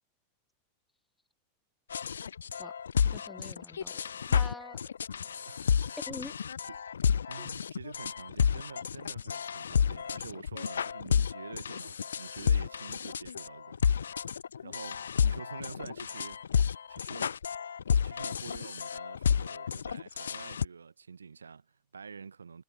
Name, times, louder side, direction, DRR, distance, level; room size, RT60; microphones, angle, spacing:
sound 1, 1.9-20.6, left 7 dB, 70° left, 0.3 m, -31 dB
voice 1, 3.0-4.0 4.3-4.8 6.1-6.3 7.3-7.5, left 2 dB, 5° left, 1.2 m, -45 dB
voice 2, 5.2-6.0 6.7-6.8 7.3-14.2 14.6-16.4 16.9-17.3 18.0-22.6, right 5 dB, 75° right, 1.3 m, -47 dB
figure-of-eight pair, 90°, 0 cm